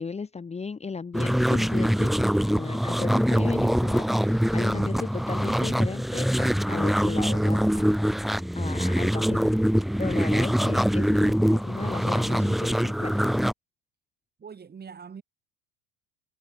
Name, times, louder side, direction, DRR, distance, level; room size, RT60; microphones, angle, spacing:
voice 1, 0.0-8.0 8.5-9.5 10.0-13.2, left 5 dB, 20° left, 1.4 m, -35 dB
sound 1, 1.1-13.5, equal, ahead, 0.4 m, -24 dB
voice 2, 14.4-15.2, right 6 dB, 30° right, 4.8 m, -43 dB
hypercardioid pair, 85°, 31 cm